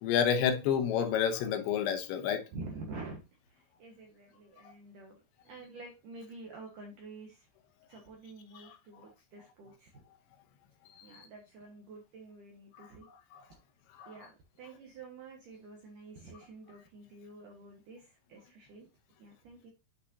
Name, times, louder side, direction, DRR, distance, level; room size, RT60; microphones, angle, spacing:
voice 1, 0.0-2.4 8.5-8.8 11.0-11.3 12.8-13.5 13.9-14.1, left 8 dB, 80° left, 3.1 m, -30 dB
voice 2, 2.5-3.2 3.5-5.2 5.4-7.5 7.9-10.0 11.0-13.1 14.1-18.9 19.2-19.7, right 3 dB, 65° right, 2.1 m, -48 dB
9.9 x 5.4 x 2.6 m
omnidirectional pair, 5.4 m